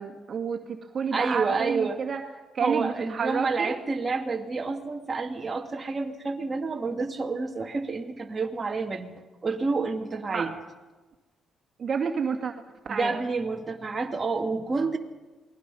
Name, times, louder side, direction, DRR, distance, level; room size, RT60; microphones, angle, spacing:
voice 1, 0.0-2.2 2.5-3.7 10.3-10.5 11.8-12.5 12.9-13.2, right 6 dB, 50° right, 3 dB, 2.3 m, -30 dB
voice 2, 1.1-2.0 2.6-9.1 9.4-10.5 12.9-15.0, right 4 dB, 30° right, 1 dB, 2.5 m, -29 dB
28.0 x 20.0 x 5.6 m, 1.2 s
cardioid pair, 90°, 0 cm